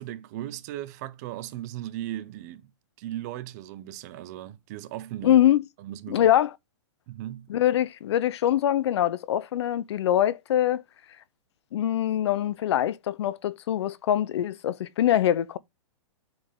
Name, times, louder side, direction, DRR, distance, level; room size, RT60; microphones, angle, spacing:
voice 1, 0.0-2.7 3.0-5.4 5.8-6.3 7.1-7.5, right 13 dB, 35° right, 0.7 m, -37 dB
voice 2, 5.2-5.6 6.1-6.5 7.5-10.8 11.7-15.6, left 11 dB, 60° left, 0.6 m, -23 dB
7.7 x 4.4 x 3.6 m
hypercardioid pair, 160°, 16 cm